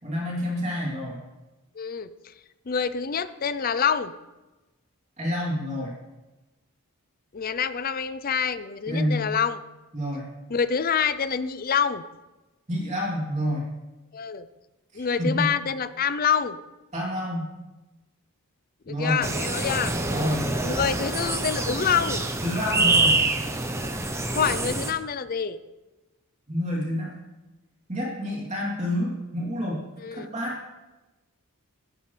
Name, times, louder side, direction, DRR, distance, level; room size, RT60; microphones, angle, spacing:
voice 1, 0.0-1.2 5.2-5.9 8.9-9.2 9.9-10.3 12.7-13.7 14.9-15.5 16.9-17.5 18.9-19.2 20.1-20.5 22.4-23.2 26.5-27.1 27.9-29.8 30.1-30.6, equal, 30° right, -4 dB, 3.1 m, -28 dB
voice 2, 1.8-2.1 2.7-4.1 7.3-9.6 10.5-12.0 14.1-14.5 14.9-16.6 18.9-19.9 20.6-22.2 24.3-25.6 30.0-30.3, left 7 dB, 40° left, 13 dB, 0.5 m, -26 dB
sound 1, 19.2-24.9, right 2 dB, 10° right, 0.8 m, -26 dB
16.0 x 11.5 x 3.3 m, 1.1 s
head